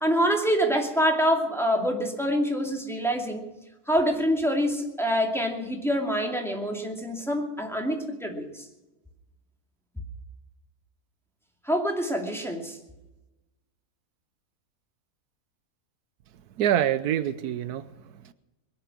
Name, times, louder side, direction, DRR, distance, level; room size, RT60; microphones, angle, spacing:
voice 1, 0.0-3.5 3.9-8.7 11.6-12.8, equal, ahead, 1 dB, 2.4 m, -26 dB
voice 2, 16.6-18.3, right 10 dB, 85° right, 14 dB, 1.3 m, -26 dB
22.0 x 10.5 x 6.1 m, 1.0 s
omnidirectional pair, 1.6 m